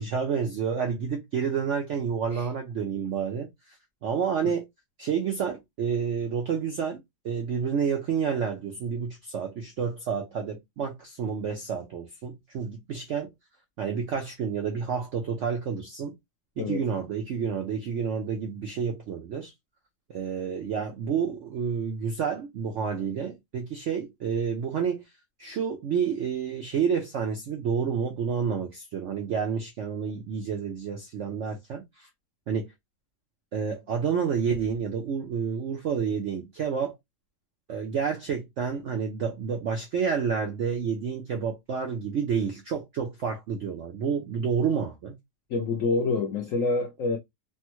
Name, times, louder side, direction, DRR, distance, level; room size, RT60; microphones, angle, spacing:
voice 1, 0.0-3.8 4.0-4.6 5.0-13.3 13.8-16.1 16.6-19.5 20.1-25.1 25.4-32.1 32.5-32.7 33.5-36.9 37.7-45.1, right 6 dB, 75° right, 0.6 m, -29 dB
voice 2, 45.5-47.2, left 3 dB, 75° left, 0.7 m, -27 dB
3.4 x 2.0 x 2.9 m
omnidirectional pair, 1.9 m